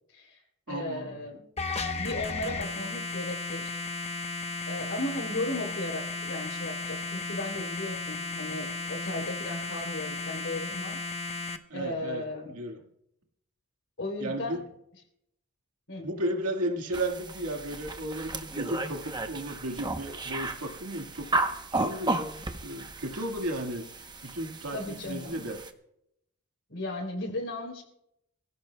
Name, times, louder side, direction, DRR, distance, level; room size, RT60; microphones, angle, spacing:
voice 1, 0.1-0.4 0.7-1.4 2.0-3.7 4.7-11.0 11.7-12.5 14.0-14.6 15.9-16.1 24.7-25.4 26.7-27.8, left 2 dB, 60° left, 1 dB, 3.7 m, -35 dB
voice 2, 0.7-1.2 11.7-12.8 14.2-14.6 16.0-21.3 21.7-23.8 24.2-25.6, right 1 dB, 90° right, 3 dB, 1.8 m, -34 dB
sound 1, 1.6-11.6, left 3 dB, 30° left, 0.9 m, -35 dB
sound 2, 16.9-25.7, right 2 dB, 20° right, 0.9 m, -34 dB
23.5 x 16.5 x 2.3 m, 0.79 s
head